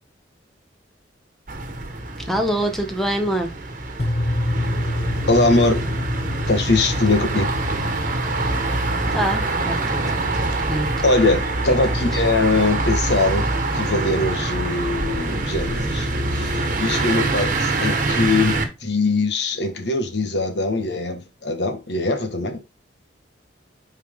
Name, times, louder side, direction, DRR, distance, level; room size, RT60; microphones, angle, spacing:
sound 1, 1.5-18.6, right 2 dB, 45° right, 1.3 m, -25 dB
voice 1, 2.3-3.5 9.1-10.0 10.7-11.0 12.1-12.2, right 1 dB, ahead, 1.0 m, -24 dB
sound 2, 4.0-12.1, left 1 dB, 35° left, 0.8 m, -28 dB
voice 2, 5.3-5.8 6.5-7.5 11.0-13.5 13.7-16.1 16.3-22.6, left 2 dB, 65° left, 1.6 m, -21 dB
8.3 x 4.7 x 3.7 m
head